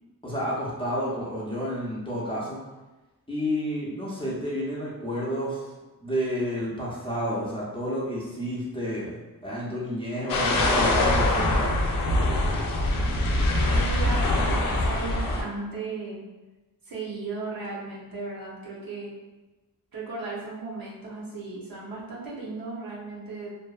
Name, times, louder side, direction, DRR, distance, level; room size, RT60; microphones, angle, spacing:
voice 1, 0.2-2.6 3.3-5.7 6.0-11.7, equal, 15° left, -7 dB, 0.5 m, -30 dB
sound 1, 10.3-15.4, left 1 dB, 65° left, 0.5 m, -23 dB
voice 2, 13.7-16.2 16.8-19.1 19.9-23.5, right 3 dB, 70° right, -5 dB, 0.8 m, -36 dB
2.6 x 2.1 x 2.3 m, 1.1 s
wide cardioid pair, 110°, 36 cm